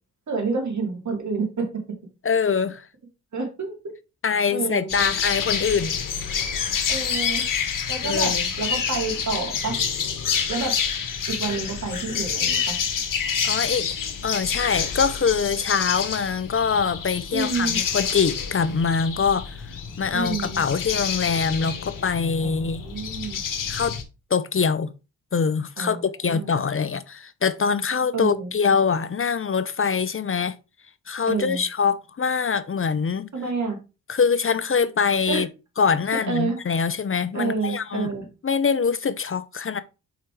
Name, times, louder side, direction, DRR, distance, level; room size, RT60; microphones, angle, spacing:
voice 1, 0.3-1.7 3.3-3.7 4.5-4.9 6.9-7.4 7.9-9.7 10.5-10.7 11.3-12.8 17.3-17.8 20.1-20.6 22.4-23.4 25.8-26.5 28.1-28.5 31.3-31.6 33.3-33.8 35.3-35.4 36.3-36.6 37.3-38.2, right 4 dB, 55° right, 3.2 m, -28 dB
voice 2, 2.2-2.8 4.2-6.0 8.0-8.5 13.4-13.9 14.2-19.6 20.0-22.8 23.7-24.0 24.3-24.9 25.3-30.6 31.1-33.3 34.1-35.5 35.8-38.1 38.4-39.8, left 6 dB, 35° left, 0.7 m, -24 dB
sound 1, 4.9-24.0, left 7 dB, 65° left, 1.5 m, -28 dB
5.6 x 4.9 x 4.8 m
supercardioid pair, 50°, 35 cm